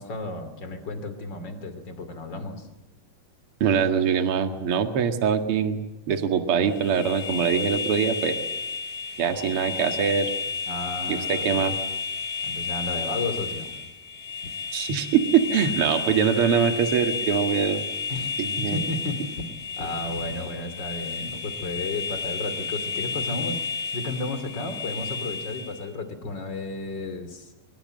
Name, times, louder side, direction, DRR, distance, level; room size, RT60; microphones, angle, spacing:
voice 1, 0.0-2.7 10.7-11.6 12.4-13.7 14.4-14.5 18.1-23.6 23.9-27.5, left 2 dB, 35° left, 10 dB, 3.2 m, -33 dB
voice 2, 3.6-8.4 9.2-10.3 11.1-11.8 14.7-17.8 18.4-18.8, right 7 dB, 45° right, 7 dB, 2.4 m, -23 dB
sound 1, 6.6-25.9, left 5 dB, 60° left, 4.5 m, -32 dB
24.0 x 23.5 x 7.7 m, 0.95 s
omnidirectional pair, 3.8 m